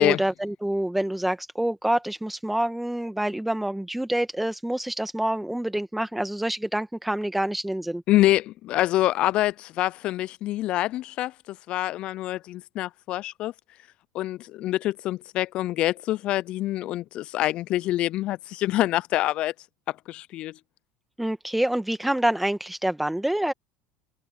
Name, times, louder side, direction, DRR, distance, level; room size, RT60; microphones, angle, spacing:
voice 1, 0.0-8.0 21.2-23.5, right 1 dB, 5° right, 1.8 m, -27 dB
voice 2, 8.1-13.5 14.1-19.5 19.9-20.6, left 15 dB, 55° left, 0.3 m, -26 dB
supercardioid pair, 95°, 2 cm